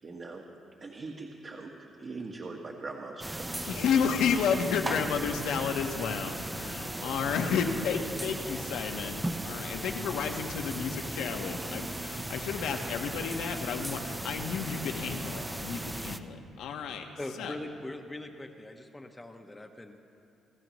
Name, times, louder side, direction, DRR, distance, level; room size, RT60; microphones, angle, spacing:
voice 1, 0.0-0.4 0.8-1.7 2.0-3.9, right 3 dB, 40° right, 0 dB, 1.6 m, -41 dB
sound 1, 3.2-16.2, right 1 dB, 10° right, 0.8 m, -37 dB
voice 2, 3.6-17.1 17.4-17.6, left 6 dB, 85° left, 4 dB, 1.4 m, -31 dB
voice 3, 17.2-20.1, left 1 dB, 15° left, 4 dB, 1.0 m, -41 dB
28.5 x 14.0 x 3.1 m, 2.6 s
cardioid pair, 90°, 0 cm